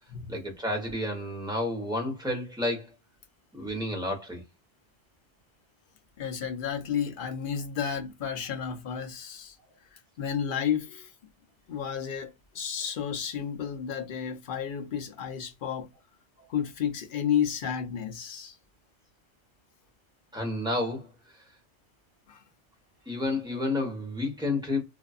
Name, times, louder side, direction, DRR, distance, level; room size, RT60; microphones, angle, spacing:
voice 1, 0.3-2.9 3.5-4.4 20.3-21.1 23.1-24.8, left 2 dB, 5° right, 0.9 m, -30 dB
voice 2, 6.2-9.6 9.9-11.1 11.7-15.9 16.5-18.6 22.3-22.4, left 8 dB, 60° left, 0.6 m, -32 dB
2.6 x 2.4 x 2.4 m
omnidirectional pair, 1.2 m